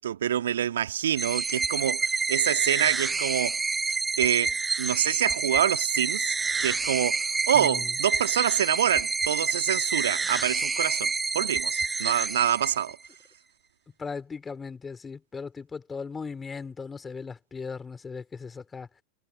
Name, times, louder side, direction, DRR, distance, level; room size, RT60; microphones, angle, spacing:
voice 1, 0.0-3.6 4.2-13.0, right 10 dB, 65° right, 2.4 m, -26 dB
sound 1, 1.2-13.1, right 4 dB, 15° right, 0.5 m, -28 dB
voice 2, 7.5-7.9 14.0-18.9, left 5 dB, 15° left, 4.5 m, -38 dB
figure-of-eight pair, 90°, 0 cm